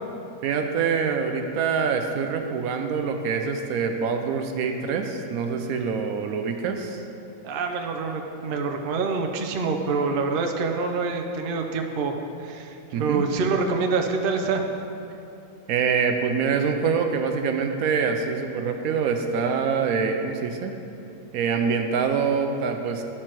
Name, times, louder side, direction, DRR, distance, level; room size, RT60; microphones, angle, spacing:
voice 1, 0.4-7.0 12.9-13.2 15.7-20.7 21.3-23.0, right 5 dB, 80° right, 5 dB, 1.0 m, -25 dB
voice 2, 7.4-14.7, right 4 dB, 55° right, 3 dB, 0.6 m, -26 dB
11.0 x 4.5 x 4.5 m, 2.7 s
omnidirectional pair, 1.5 m